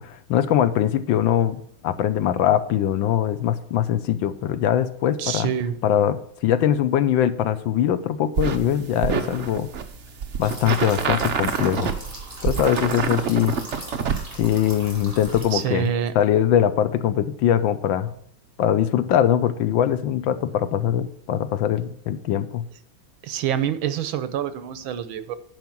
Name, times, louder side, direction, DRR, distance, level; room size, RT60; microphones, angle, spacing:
voice 1, 0.0-5.5 5.8-9.7 10.4-11.9 12.4-13.6 14.3-15.9 16.1-18.1 18.6-22.6, left 10 dB, 75° left, 12 dB, 1.5 m, -22 dB
voice 2, 5.2-5.8 15.5-16.1 23.2-25.4, right 9 dB, 80° right, 12 dB, 1.6 m, -26 dB
sound 1, 8.4-15.4, right 6 dB, 50° right, 0.8 m, -27 dB
sound 2, 10.4-15.9, right 1 dB, 15° right, 3.4 m, -40 dB
10.5 x 5.2 x 6.0 m, 0.68 s
omnidirectional pair, 2.2 m